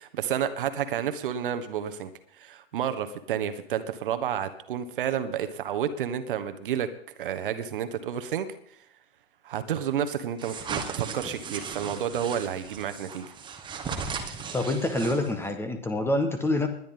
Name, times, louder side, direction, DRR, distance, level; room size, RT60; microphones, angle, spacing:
voice 1, 0.0-2.1 2.4-6.9 7.2-8.5 9.4-13.3, right 9 dB, 55° right, 10 dB, 1.3 m, -30 dB
sound 1, 10.4-15.5, right 5 dB, 15° right, 1.5 m, -37 dB
voice 2, 14.5-16.7, left 2 dB, 5° left, 8 dB, 1.3 m, -26 dB
20.0 x 10.5 x 3.8 m, 0.68 s
figure-of-eight pair, 110°, 33 cm